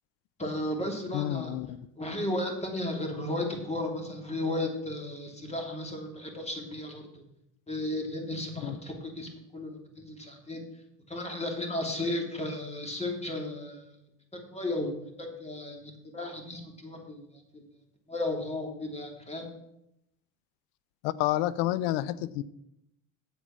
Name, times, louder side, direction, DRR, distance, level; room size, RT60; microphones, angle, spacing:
voice 1, 0.4-1.5 2.0-7.2 7.7-10.6 11.1-13.9 14.3-17.6 18.1-19.5, left 1 dB, 15° left, 2 dB, 2.9 m, -34 dB
voice 2, 1.1-1.8 8.6-8.8 21.0-22.4, left 14 dB, 85° left, 18 dB, 0.6 m, -29 dB
8.1 x 7.9 x 6.0 m, 0.81 s
supercardioid pair, 75°, 37 cm